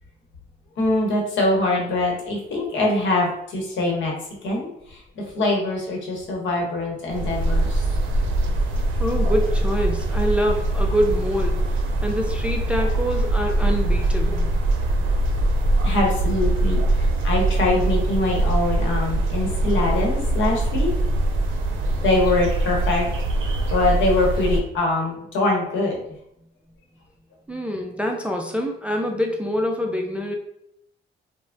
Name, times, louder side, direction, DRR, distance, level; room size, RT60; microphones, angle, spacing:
voice 1, 0.8-4.1 4.4-7.8 15.8-20.9 22.0-23.1 23.7-26.0, left 2 dB, 70° left, -1 dB, 0.9 m, -23 dB
sound 1, 7.1-24.6, right 2 dB, 80° right, 0.5 m, -22 dB
voice 2, 9.0-11.7 12.0-14.5 27.5-30.4, equal, 5° right, 1 dB, 0.3 m, -25 dB
3.2 x 2.1 x 2.5 m, 0.76 s
cardioid pair, 90°, 20 cm